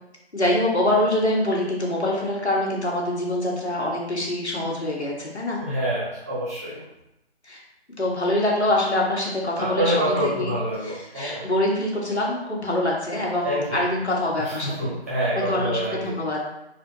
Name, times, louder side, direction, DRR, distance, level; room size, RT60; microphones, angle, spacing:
voice 1, 0.3-5.6 7.4-7.6 8.0-15.0 15.3-16.4, left 1 dB, 80° left, -3 dB, 1.8 m, -25 dB
voice 2, 5.6-6.8 9.6-11.5 13.4-13.8 14.4-16.1, right 1 dB, 15° right, -9 dB, 0.9 m, -26 dB
4.5 x 4.1 x 2.9 m, 0.86 s
figure-of-eight pair, 155°, 33 cm